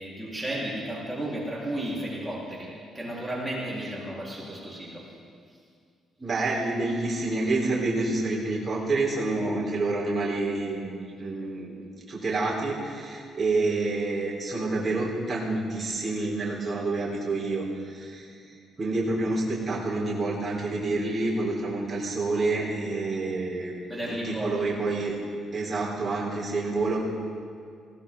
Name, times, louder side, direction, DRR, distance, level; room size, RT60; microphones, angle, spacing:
voice 1, 0.0-2.7 2.9-5.0 23.1-23.2 23.9-24.6, right 1 dB, 10° right, -6 dB, 4.1 m, -33 dB
voice 2, 6.2-11.8 12.1-18.4 18.8-23.7 24.2-25.2 25.5-27.0, right 2 dB, 30° right, -5 dB, 3.9 m, -28 dB
19.5 x 16.5 x 3.8 m, 2.2 s
cardioid pair, 90°, 0 cm